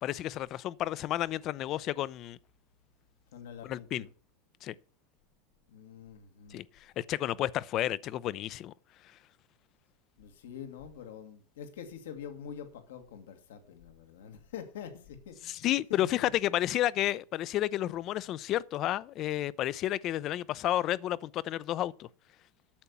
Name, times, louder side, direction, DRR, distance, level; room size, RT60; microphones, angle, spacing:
voice 1, 0.0-2.4 3.6-4.0 4.6-4.7 6.5-6.6 7.0-8.7 15.4-22.1, left 13 dB, 45° left, 0.5 m, -31 dB
voice 2, 3.3-4.1 5.7-6.6 10.2-16.3, left 8 dB, 90° left, 1.8 m, -45 dB
8.7 x 7.0 x 6.9 m
supercardioid pair, 120°, 0 cm